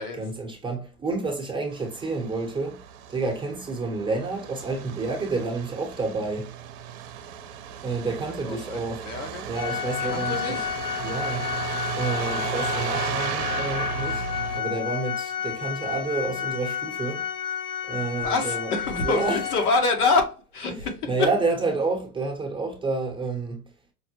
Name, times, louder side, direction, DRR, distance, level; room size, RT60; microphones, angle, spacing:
voice 1, 0.2-2.8 3.1-6.5 7.8-9.1 9.5-10.6 11.0-11.4 12.0-14.3 14.5-17.2 17.8-18.7 19.0-19.4 21.0-23.6, right 3 dB, 10° right, 0.7 m, -29 dB
Truck, 1.7-14.6, right 9 dB, 50° right, 0.7 m, -35 dB
voice 2, 8.2-9.5 9.8-10.7 18.2-21.3, left 3 dB, 80° left, 1.2 m, -26 dB
Organ, 9.5-20.1, left 9 dB, 35° left, 0.5 m, -31 dB
5.2 x 2.1 x 2.9 m
hypercardioid pair, 110°, 46 cm